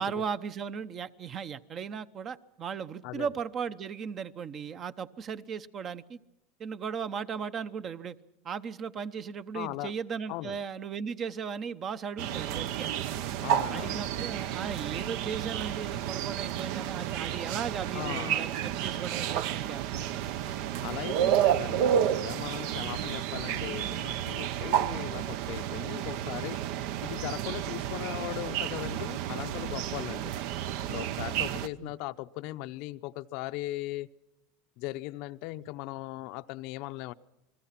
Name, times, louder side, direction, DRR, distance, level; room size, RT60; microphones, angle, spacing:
voice 1, 0.0-6.2 6.6-8.2 8.4-12.9 13.7-20.3 27.6-27.8 31.8-31.9, right 6 dB, 30° right, 13 dB, 0.9 m, -37 dB
voice 2, 9.5-9.9 10.3-10.6 13.4-14.2 17.9-18.5 20.8-26.6 27.0-30.3 30.9-34.1 34.8-37.1, left 17 dB, 60° left, 11 dB, 0.7 m, -38 dB
sound 1, 12.2-31.7, right 10 dB, 65° right, 0.9 m, -31 dB
29.0 x 20.5 x 5.9 m, 0.91 s
supercardioid pair, 135°, 0 cm